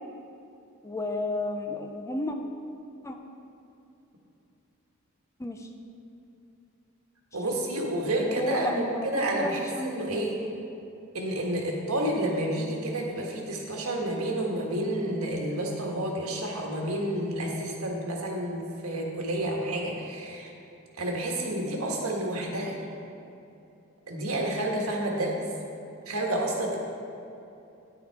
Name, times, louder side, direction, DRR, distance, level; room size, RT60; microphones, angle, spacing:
voice 1, 0.8-2.4 3.0-3.2 5.4-5.7 7.5-7.6 8.2-10.5, left 1 dB, 15° left, 4 dB, 0.5 m, -32 dB
voice 2, 7.3-8.9 9.1-10.3 11.1-20.5 20.9-22.8 24.1-25.3 26.1-26.8, right 1 dB, 75° right, 0 dB, 1.5 m, -30 dB
10.0 x 7.3 x 4.7 m, 2.7 s
head